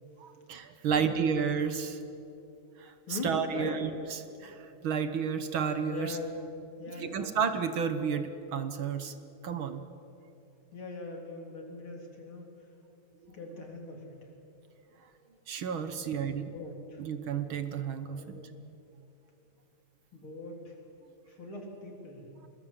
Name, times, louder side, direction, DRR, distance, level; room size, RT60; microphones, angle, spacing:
voice 1, 0.2-2.0 2.8-3.9 4.4-6.2 7.0-9.1 9.4-9.8 13.2-13.3 15.5-16.5 17.0-18.4, right 7 dB, 60° right, 10 dB, 1.4 m, -31 dB
voice 2, 0.9-1.3 3.1-3.8 5.9-6.4 6.8-7.4 10.7-12.5 13.3-14.3 15.9-17.0 18.1-18.5 20.1-20.8 21.3-22.3, left 3 dB, 40° left, 1 dB, 4.2 m, -41 dB
25.0 x 21.0 x 8.2 m, 2.8 s
omnidirectional pair, 3.5 m